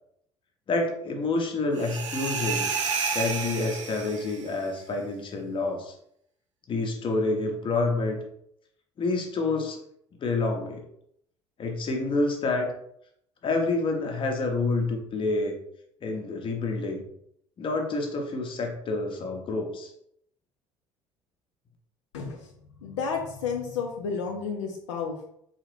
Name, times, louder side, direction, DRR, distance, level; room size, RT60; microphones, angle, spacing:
voice 1, 0.7-2.7 3.1-5.9 6.7-8.2 9.0-9.8 10.2-10.8 11.6-12.7 13.4-15.6 16.0-17.0 17.6-19.9, left 3 dB, 35° left, 2 dB, 0.8 m, -28 dB
sound 1, 1.8-4.5, right 5 dB, 80° right, 0.5 m, -30 dB
voice 2, 22.1-25.2, left 5 dB, 70° left, 1 dB, 0.5 m, -32 dB
3.7 x 2.4 x 3.2 m, 0.71 s
figure-of-eight pair, 55°, 16 cm